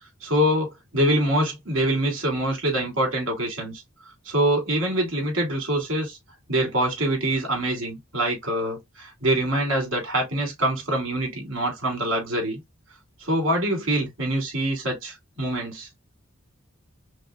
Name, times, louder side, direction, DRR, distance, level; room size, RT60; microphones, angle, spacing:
voice 1, 0.2-3.8 4.3-6.2 6.5-12.6 13.2-15.9, right 1 dB, 65° right, 2.4 m, -25 dB
5.3 x 2.1 x 2.3 m
head